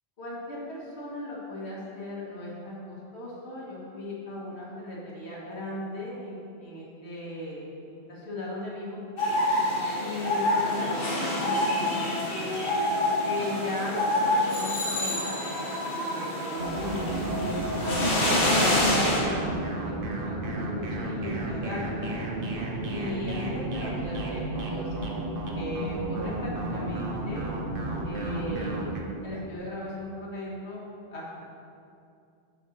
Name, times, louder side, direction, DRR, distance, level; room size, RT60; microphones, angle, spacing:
voice 1, 0.2-9.0 10.0-12.4 13.2-15.3 16.0-19.5 19.8-22.2 22.9-25.0 25.5-27.5 28.0-28.9 29.2-30.8 31.1-31.4, left 1 dB, 90° left, -6 dB, 1.8 m, -37 dB
sound 1, 9.2-19.2, left 1 dB, 60° left, 1.6 m, -27 dB
sound 2, 16.6-29.0, right 1 dB, 60° right, 1.0 m, -32 dB
7.0 x 4.1 x 6.3 m, 2.5 s
omnidirectional pair, 1.1 m